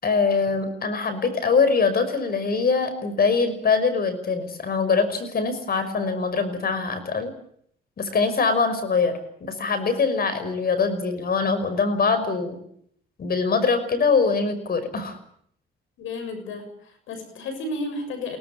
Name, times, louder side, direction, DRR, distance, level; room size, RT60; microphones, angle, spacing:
voice 1, 0.0-7.3 8.0-12.6 13.2-15.2, left 4 dB, 50° left, 11 dB, 5.6 m, -23 dB
voice 2, 16.0-18.4, left 2 dB, 80° left, 8 dB, 6.7 m, -32 dB
23.0 x 18.0 x 9.2 m, 0.67 s
cardioid pair, 90°, 20 cm